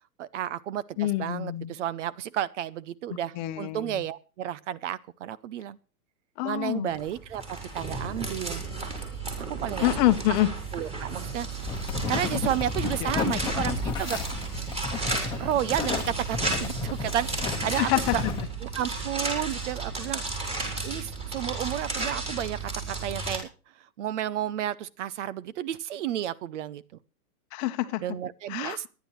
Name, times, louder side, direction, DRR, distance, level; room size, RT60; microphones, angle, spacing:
voice 1, 0.2-5.8 6.4-7.4 7.7-8.6 9.5-9.9 10.7-11.5 12.1-14.2 15.0-15.1 15.4-18.2 18.6-20.3 20.8-23.5 24.0-26.8 28.0-28.9, right 11 dB, 50° right, 20 dB, 0.7 m, -32 dB
voice 2, 1.0-1.7 3.4-4.0 6.4-6.9 9.8-10.5 13.0-13.3 17.7-18.2 27.5-28.0 28.5-28.9, left 16 dB, 30° left, 9 dB, 1.0 m, -26 dB
sound 1, 6.9-23.4, right 3 dB, 15° right, 3.7 m, -33 dB
sound 2, 11.6-18.4, left 5 dB, 10° left, 1.3 m, -32 dB
23.0 x 10.5 x 3.2 m, 0.35 s
supercardioid pair, 160°, 46 cm